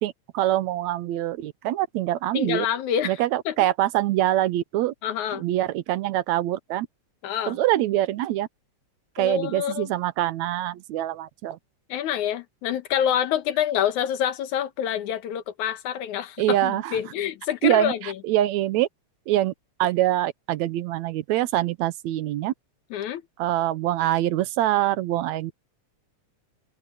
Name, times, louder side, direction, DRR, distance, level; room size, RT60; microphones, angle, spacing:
voice 1, 0.0-2.7 3.0-4.9 5.3-6.9 7.5-8.5 9.2-11.6 16.4-17.0 17.6-18.9 19.3-19.5 19.8-22.5 23.4-25.5, right 14 dB, 75° right, 2.0 m, -24 dB
voice 2, 2.3-3.2 3.5-3.6 5.0-5.4 7.2-7.6 9.2-9.9 11.9-18.1 22.9-23.2, left 10 dB, 80° left, 2.7 m, -27 dB
open air
omnidirectional pair, 3.4 m